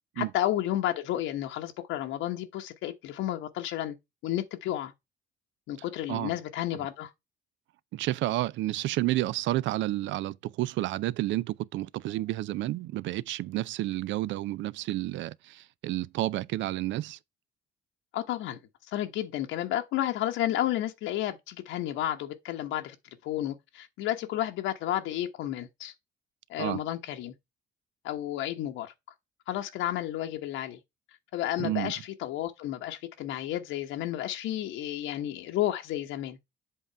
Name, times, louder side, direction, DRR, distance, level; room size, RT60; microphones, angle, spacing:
voice 1, 0.2-4.0 4.2-4.9 5.7-7.1 18.1-18.6 18.9-23.0 23.2-25.9 26.5-27.3 28.0-28.9 29.5-30.8 31.3-36.4, left 13 dB, 85° left, 1.0 m, -32 dB
voice 2, 7.9-17.2 26.6-26.8 31.6-31.9, right 16 dB, 75° right, 0.4 m, -30 dB
7.8 x 3.7 x 4.4 m
cardioid pair, 110°, 20 cm